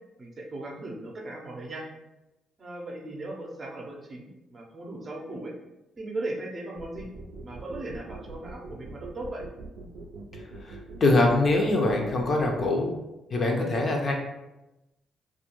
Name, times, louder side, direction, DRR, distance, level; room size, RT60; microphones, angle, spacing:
voice 1, 0.2-1.9 2.6-5.5 6.0-7.1 7.4-9.5, right 2 dB, 40° right, -1 dB, 0.6 m, -37 dB
sound 1, 6.8-12.7, right 3 dB, 80° right, 0.4 m, -42 dB
voice 2, 10.6-12.9 13.3-14.1, left 2 dB, 45° left, 0 dB, 0.5 m, -23 dB
2.3 x 2.2 x 2.9 m, 0.97 s
cardioid pair, 90°, 0 cm